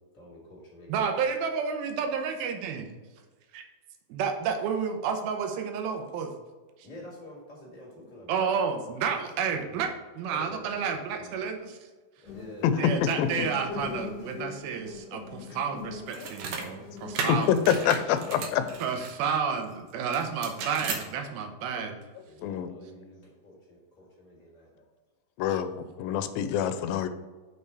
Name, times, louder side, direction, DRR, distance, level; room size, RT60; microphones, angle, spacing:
voice 1, 0.1-1.0 6.8-8.4 9.4-9.9 10.3-11.4 12.2-12.9 15.5-15.6 18.1-18.3 22.3-24.8, left 1 dB, 30° left, -5 dB, 2.3 m, -47 dB
voice 2, 0.9-2.9 3.5-3.6 4.1-6.3 6.8-6.9 8.3-9.9 10.2-11.8 12.8-17.6 18.8-22.0 25.5-25.6, right 6 dB, 85° right, 4 dB, 2.8 m, -30 dB
sound 1, 12.2-18.8, left 5 dB, 55° left, 2.6 m, -42 dB
voice 3, 12.6-13.3 16.2-16.3 17.3-18.7 22.4-22.7 25.4-27.1, left 9 dB, 90° left, 11 dB, 2.4 m, -26 dB
sound 2, 16.1-16.7 17.2-19.1 20.1-21.1, right 5 dB, 70° right, 2.5 m, -35 dB
6.5 x 5.6 x 4.6 m, 1.3 s
omnidirectional pair, 4.1 m